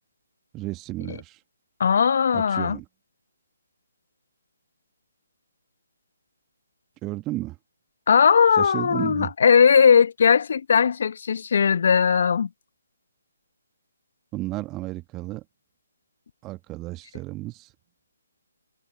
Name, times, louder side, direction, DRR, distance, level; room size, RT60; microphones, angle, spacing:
voice 1, 0.5-1.4 2.3-2.8 7.0-7.6 8.6-9.3 14.3-15.4 16.4-17.7, right 18 dB, 20° right, 1.7 m, -33 dB
voice 2, 1.8-2.8 8.1-12.5, left 6 dB, 55° left, 0.9 m, -18 dB
figure-of-eight pair, 145°, 0 cm